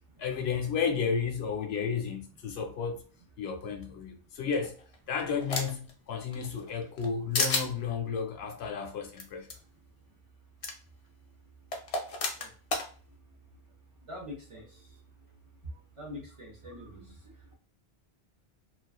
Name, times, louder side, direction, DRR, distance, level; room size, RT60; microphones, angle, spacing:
voice 1, 0.2-3.0 3.4-4.8 5.1-9.5, left 6 dB, 80° left, 0.8 m, -32 dB
sound 1, 4.5-5.9 6.3-7.1 7.3-7.7 9.2-9.3 9.5-9.6 10.6-10.7 11.7-12.9, left 3 dB, 50° left, 0.4 m, -31 dB
voice 2, 14.1-14.6 16.0-17.1, left 1 dB, 40° right, 0.6 m, -43 dB
2.5 x 2.2 x 2.3 m
omnidirectional pair, 1.0 m